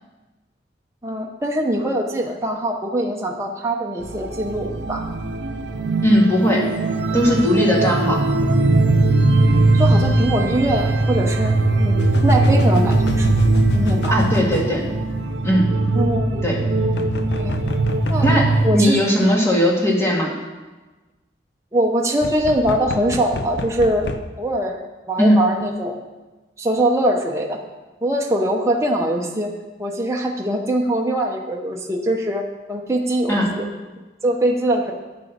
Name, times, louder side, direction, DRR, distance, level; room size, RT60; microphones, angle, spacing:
voice 1, 1.0-5.0 9.5-13.3 13.7-14.2 15.9-16.4 17.4-17.6 18.1-18.3 18.6-19.3 21.7-24.1 24.4-24.8 25.1-26.0 26.6-27.6 28.0-29.5 29.8-33.7 34.2-34.9, right 1 dB, 15° right, 0 dB, 0.9 m, -22 dB
sound 1, 4.0-18.7, right 2 dB, 75° right, 0.7 m, -20 dB
voice 2, 6.0-6.7 7.1-8.2 14.1-14.9 15.4-15.7 16.4-16.6 18.2-18.5 18.7-20.3 25.2-25.4 33.3-33.5, equal, 15° left, -3 dB, 1.9 m, -17 dB
sound 2, 10.0-10.1 12.0-14.7 16.9-18.5 22.2-24.2, left 3 dB, 70° left, 0.7 m, -28 dB
9.7 x 6.8 x 6.8 m, 1.2 s
head